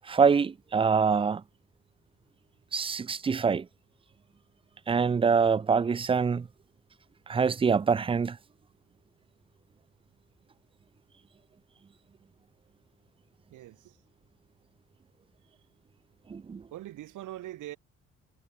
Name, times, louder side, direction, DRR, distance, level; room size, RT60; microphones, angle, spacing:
voice 1, 0.1-1.4 2.7-3.7 4.9-6.5 7.3-8.4 16.3-16.6, right 5 dB, 20° right, 0.4 m, -25 dB
voice 2, 13.5-14.0 16.7-17.8, right 14 dB, 85° right, 4.4 m, -42 dB
cardioid pair, 90°, 30 cm